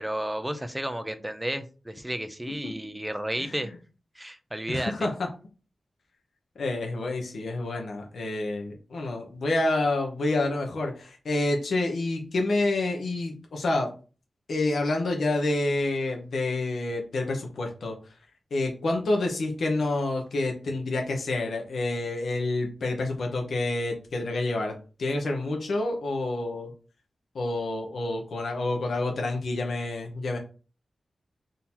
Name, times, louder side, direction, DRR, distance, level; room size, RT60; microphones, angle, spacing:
voice 1, 0.0-3.7 4.2-5.1, right 1 dB, 5° right, 8 dB, 0.5 m, -32 dB
voice 2, 4.7-5.1 6.6-13.9 14.5-18.0 18.5-26.7 27.3-30.4, left 2 dB, 85° left, 1 dB, 0.8 m, -28 dB
3.7 x 2.7 x 4.3 m, 0.36 s
wide cardioid pair, 155°, 0 cm